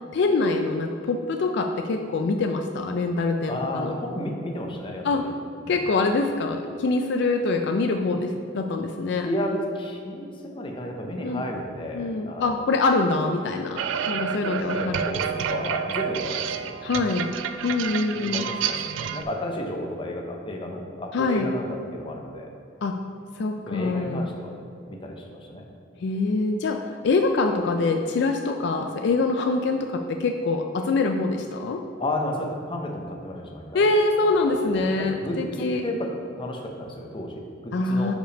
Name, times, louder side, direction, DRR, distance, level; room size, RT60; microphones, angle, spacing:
voice 1, 0.1-3.9 5.0-5.2 5.7-9.3 11.2-11.4 11.9-15.0 16.8-17.3 17.6-18.5 21.1-21.5 22.8-22.9 23.4-24.3 26.0-31.8 33.7-35.8 37.7-38.1, left 3 dB, 65° left, 5 dB, 0.4 m, -24 dB
voice 2, 3.5-5.3 5.7-5.8 9.2-12.5 14.4-16.8 18.1-22.5 23.7-24.5 24.9-25.7 32.0-33.9 34.2-36.1 36.3-38.1, left 1 dB, 25° left, 2 dB, 0.7 m, -32 dB
sound 1, 13.8-19.2, right 7 dB, 75° right, 0.3 m, -29 dB
5.1 x 5.1 x 5.0 m, 2.5 s
head